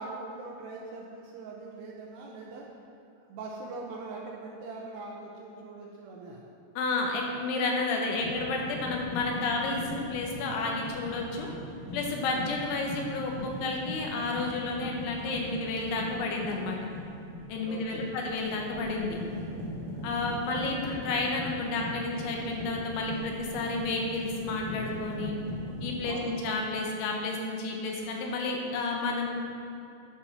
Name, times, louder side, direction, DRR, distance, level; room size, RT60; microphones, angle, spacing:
voice 1, 0.0-2.6 3.1-6.4 17.7-18.1 26.0-26.4, right 3 dB, 75° right, -2 dB, 2.6 m, -41 dB
voice 2, 6.8-11.5 11.9-16.8 17.5-19.2 20.0-25.3 25.8-29.3, left 3 dB, 80° left, 0 dB, 3.4 m, -31 dB
sound 1, 8.1-26.0, equal, 45° right, 2.5 m, -40 dB
10.5 x 6.1 x 5.7 m, 2.7 s
omnidirectional pair, 5.5 m